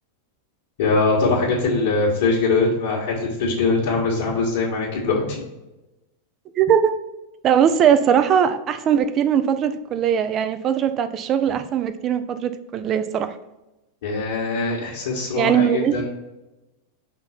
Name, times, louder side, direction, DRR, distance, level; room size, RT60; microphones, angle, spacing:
voice 1, 0.8-5.4 14.0-16.1, left 3 dB, 55° left, -6 dB, 1.5 m, -22 dB
voice 2, 6.5-7.0 7.4-13.4 15.4-15.9, right 8 dB, 30° right, 10 dB, 0.5 m, -20 dB
5.8 x 3.8 x 4.3 m, 0.99 s
figure-of-eight pair, 90°, 0 cm